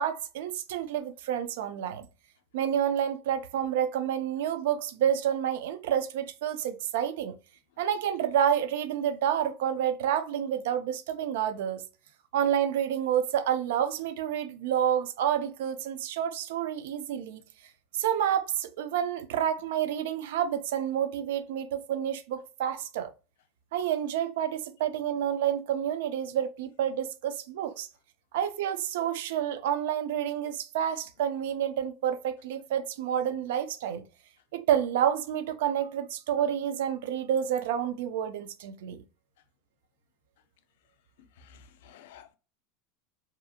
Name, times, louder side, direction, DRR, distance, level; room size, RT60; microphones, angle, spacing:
voice 1, 0.0-2.1 2.5-7.4 7.8-11.8 12.3-17.4 18.0-23.1 23.7-27.9 28.3-34.0 34.5-39.0, right 9 dB, 80° right, 0.3 m, -29 dB
voice 2, 41.4-42.4, left 7 dB, 80° left, 0.3 m, -53 dB
2.6 x 2.4 x 2.6 m
supercardioid pair, 175°, 0 cm